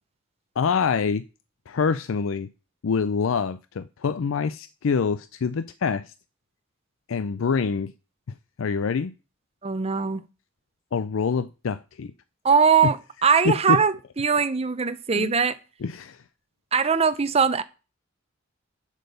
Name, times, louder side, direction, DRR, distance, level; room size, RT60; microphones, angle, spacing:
voice 1, 0.6-1.2 1.7-2.5 2.8-6.1 7.1-7.9 8.6-9.1 10.9-12.1 12.8-12.9 13.4-13.8 15.2-15.3 15.8-16.2, left 5 dB, 75° left, 0.4 m, -25 dB
voice 2, 9.6-10.2 12.4-15.6 16.7-17.6, right 6 dB, 30° right, 0.7 m, -21 dB
7.7 x 7.4 x 6.8 m
head